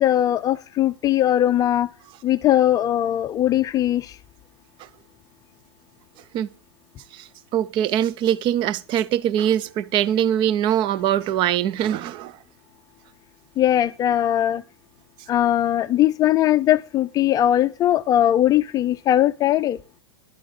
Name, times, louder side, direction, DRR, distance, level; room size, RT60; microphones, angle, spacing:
voice 1, 0.0-1.9 2.2-4.2 13.6-14.6 15.3-19.8, left 12 dB, 25° left, 0.5 m, -20 dB
voice 2, 7.5-12.3, right 10 dB, 35° right, 0.6 m, -22 dB
12.0 x 8.4 x 4.9 m
hypercardioid pair, 105°, 13 cm